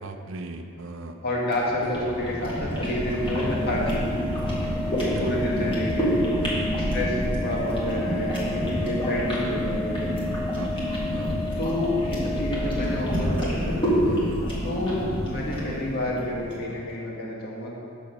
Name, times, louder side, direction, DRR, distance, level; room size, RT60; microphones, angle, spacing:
voice 1, 0.0-1.2 5.1-6.1 6.4-6.8 10.6-11.4 14.1-14.5, right 2 dB, 65° right, 6 dB, 0.6 m, -37 dB
voice 2, 1.2-4.1 5.2-6.2 6.9-7.2 7.4-10.1 11.6-13.8 14.6-17.8, left 1 dB, 50° left, -4 dB, 1.7 m, -29 dB
sound 1, 1.5-16.7, equal, 25° left, 1.8 m, -28 dB
Organ, 3.0-13.6, left 3 dB, 5° right, 1.0 m, -34 dB
6.7 x 6.3 x 6.1 m, 2.4 s
head